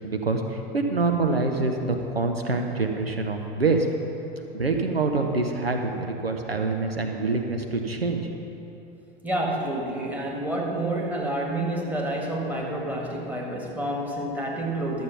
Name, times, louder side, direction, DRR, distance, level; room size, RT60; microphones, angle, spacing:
voice 1, 0.0-3.9 4.5-8.3, right 3 dB, 90° right, 4 dB, 0.9 m, -25 dB
voice 2, 9.2-15.0, right 1 dB, 5° right, -2 dB, 2.0 m, -29 dB
12.5 x 7.4 x 5.9 m, 2.9 s
figure-of-eight pair, 85°, 30 cm